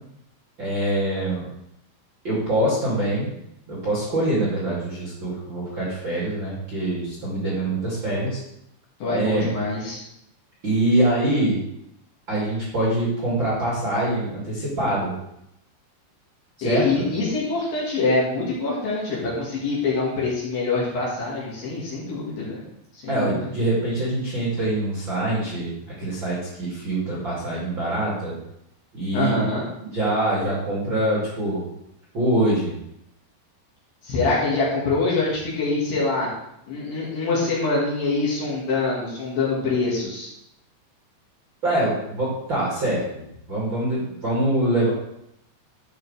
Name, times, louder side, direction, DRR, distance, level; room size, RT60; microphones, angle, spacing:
voice 1, 0.6-1.5 2.2-3.3 3.7-8.4 9.1-9.5 10.6-11.6 12.3-15.1 16.6-17.1 23.1-28.3 28.9-29.5 29.8-31.6 32.1-32.8 41.6-44.9, right 1 dB, 35° right, -8 dB, 2.4 m, -24 dB
voice 2, 9.0-10.0 16.6-22.7 22.9-23.4 29.1-29.7 34.0-36.3 36.7-40.3, left 3 dB, 55° left, -6 dB, 3.3 m, -24 dB
12.5 x 6.0 x 3.4 m, 0.80 s
omnidirectional pair, 5.4 m